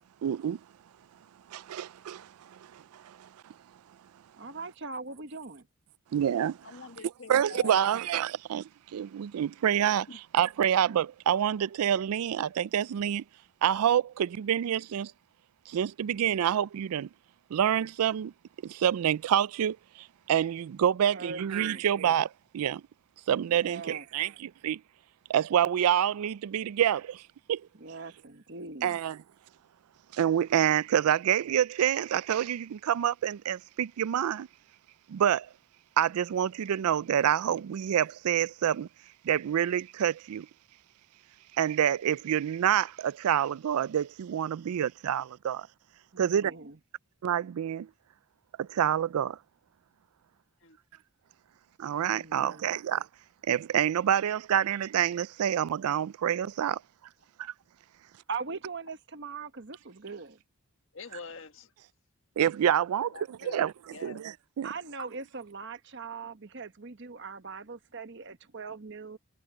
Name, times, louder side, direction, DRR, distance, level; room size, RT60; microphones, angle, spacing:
voice 1, 0.2-0.6 1.5-3.3 6.1-6.6 7.3-13.2 13.6-15.1 15.7-17.1 17.5-18.3 18.6-22.8 23.3-24.8 25.3-27.2 27.5-27.7 28.8-29.2 30.1-34.5 35.1-35.5 36.0-38.9 39.2-40.5 41.6-45.7 46.2-46.5 47.2-47.9 48.6-49.4 51.8-53.1 53.5-56.8 57.4-57.5 62.4-63.7 64.0-64.7, right 9 dB, 85° right, 0.3 m, -27 dB
voice 2, 4.4-5.7 21.1-21.8 23.5-24.0 27.8-29.0 46.1-46.8 52.1-52.7 58.3-60.4 64.6-69.2, right 4 dB, 50° right, 1.1 m, -41 dB
voice 3, 6.6-7.9 10.1-10.2 50.6-50.8 60.9-61.7 63.0-63.6 63.9-64.2, left 4 dB, 60° left, 1.7 m, -45 dB
head